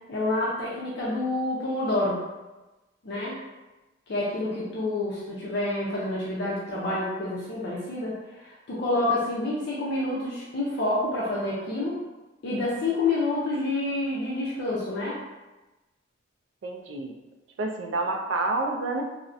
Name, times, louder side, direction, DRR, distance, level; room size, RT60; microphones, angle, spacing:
voice 1, 0.1-2.2 3.0-3.4 4.1-12.0 12.4-15.2, left 2 dB, 55° left, -6 dB, 0.4 m, -28 dB
voice 2, 16.6-17.1 17.6-19.0, right 2 dB, 60° right, 2 dB, 0.3 m, -28 dB
2.4 x 2.0 x 2.5 m, 1.1 s
head